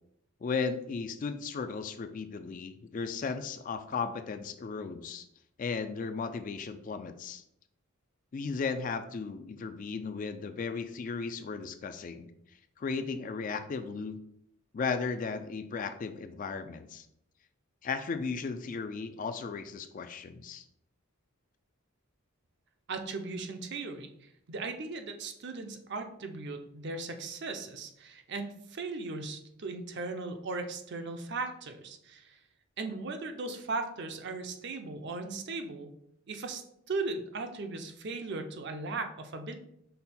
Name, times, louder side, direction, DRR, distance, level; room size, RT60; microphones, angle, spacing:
voice 1, 0.4-5.3 5.6-7.4 8.3-12.3 12.8-14.2 14.7-17.1 17.8-20.6, left 5 dB, 40° left, 10 dB, 0.3 m, -35 dB
voice 2, 22.9-32.4 32.8-35.9 36.3-39.6, right 3 dB, 55° right, 6 dB, 0.6 m, -38 dB
5.4 x 2.2 x 4.2 m, 0.74 s
head